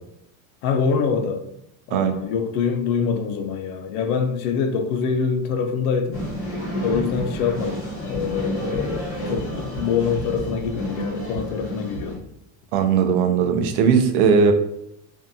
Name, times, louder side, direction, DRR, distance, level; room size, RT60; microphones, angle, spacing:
voice 1, 0.6-1.5 1.9-6.3 6.8-12.2, left 6 dB, 85° left, 0.6 m, -25 dB
sound 1, 6.1-12.2, equal, 30° left, 0.7 m, -30 dB
voice 2, 12.7-14.5, right 6 dB, 75° right, 0.6 m, -18 dB
2.6 x 2.2 x 2.6 m
cardioid pair, 160°, 45 cm